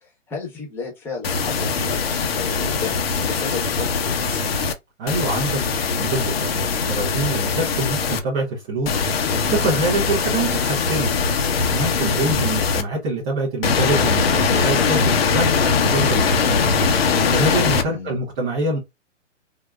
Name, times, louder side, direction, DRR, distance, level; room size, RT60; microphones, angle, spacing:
voice 1, 0.0-2.0 2.3-2.9 3.3-4.4 12.2-12.5 17.8-18.2, left 4 dB, 5° left, 0.9 m, -33 dB
sound 1, 1.2-4.7 5.1-8.2 8.9-12.8 13.6-17.8, left 5 dB, 55° left, 0.7 m, -21 dB
voice 2, 5.0-9.0 9.3-11.1 11.7-16.7 17.3-18.8, right 2 dB, 10° right, 0.4 m, -25 dB
3.6 x 2.1 x 2.3 m
figure-of-eight pair, 135°, 37 cm